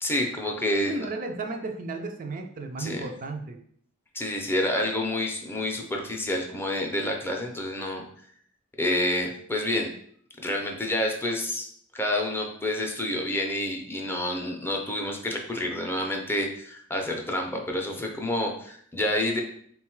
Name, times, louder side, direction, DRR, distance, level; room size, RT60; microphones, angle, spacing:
voice 1, 0.0-1.0 2.8-3.1 4.1-8.0 8.8-9.9 10.4-11.7 11.9-19.4, left 1 dB, 10° left, 1 dB, 0.5 m, -28 dB
voice 2, 0.8-3.6, right 3 dB, 40° right, 4 dB, 0.4 m, -34 dB
3.8 x 2.3 x 4.4 m, 0.62 s
head